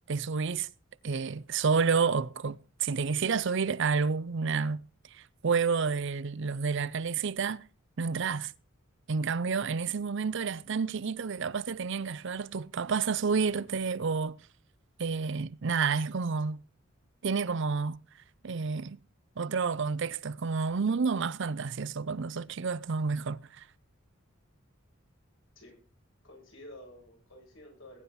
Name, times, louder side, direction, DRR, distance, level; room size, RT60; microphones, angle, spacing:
voice 1, 0.1-0.7 1.0-4.8 5.1-7.6 8.0-8.5 9.1-14.4 15.0-16.6 17.2-18.0 18.4-19.0 19.4-23.6, right 5 dB, 60° right, 0.6 m, -30 dB
voice 2, 26.2-28.0, left 1 dB, 75° left, 7.8 m, -51 dB
20.5 x 9.7 x 4.3 m
head